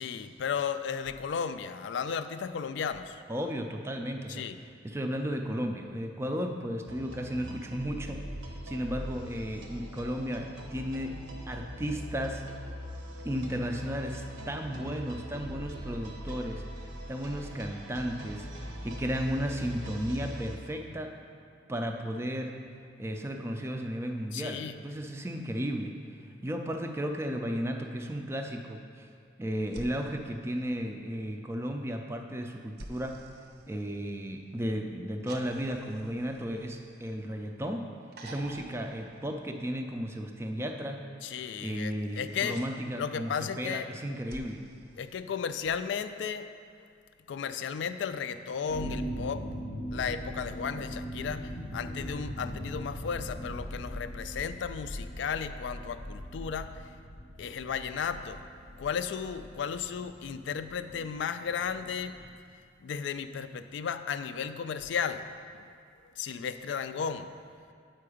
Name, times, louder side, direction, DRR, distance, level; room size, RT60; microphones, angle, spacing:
voice 1, 0.0-3.2 4.3-4.6 24.3-24.8 41.2-42.6 43.0-43.9 45.0-46.5 46.8-46.9 47.3-49.5 49.9-57.0 57.4-58.4 58.8-62.2 62.8-65.7 66.2-67.3, left 7 dB, 70° left, 10 dB, 0.3 m, -34 dB
voice 2, 3.3-4.5 4.8-8.2 8.7-11.2 11.5-12.4 13.2-21.2 21.7-22.6 23.0-25.9 26.4-29.1 29.4-33.2 33.7-37.9 38.2-41.1 41.6-44.6, equal, 15° right, 4 dB, 0.3 m, -34 dB
sound 1, 6.9-20.6, equal, 90° right, 0.9 m, -42 dB
sound 2, 29.7-31.3 32.8-34.5 35.3-37.5 38.1-40.0 41.9-42.7 44.3-45.8 47.3-47.4, right 1 dB, 55° right, 0.6 m, -50 dB
sound 3, 48.7-62.3, equal, 35° left, 0.7 m, -40 dB
7.7 x 4.6 x 4.9 m, 2.2 s
head